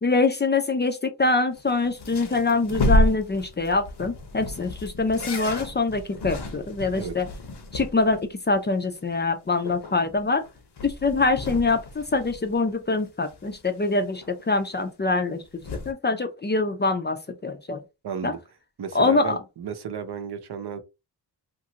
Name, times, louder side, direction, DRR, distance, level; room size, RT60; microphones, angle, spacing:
voice 1, 0.0-7.3 7.7-10.4 10.8-15.4 15.9-17.2 17.4-17.8 18.2-18.3 18.9-19.3, left 3 dB, 25° left, 0.4 m, -24 dB
sound 1, 1.5-8.3 8.5-8.6 9.0-9.1 9.4-13.0 13.3-14.5 15.2-15.9, left 1 dB, 70° left, 0.8 m, -30 dB
voice 2, 18.0-18.4 18.8-20.8, right 7 dB, 65° right, 0.7 m, -33 dB
2.9 x 2.5 x 2.8 m
wide cardioid pair, 110°, 42 cm